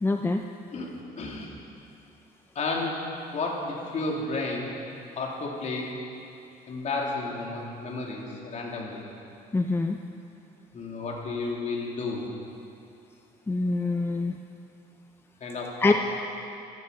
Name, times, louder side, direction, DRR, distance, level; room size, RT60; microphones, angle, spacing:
voice 1, 0.0-0.4 9.5-10.0 13.5-14.4 15.8-15.9, left 3 dB, 15° left, 5 dB, 0.6 m, -24 dB
voice 2, 1.2-1.5 2.5-3.0 3.3-4.7 5.1-5.9 6.7-9.0 10.7-12.2 15.4-15.9, left 3 dB, 45° left, -2 dB, 3.1 m, -32 dB
15.0 x 14.0 x 5.6 m, 2.7 s
cardioid pair, 110°, 17 cm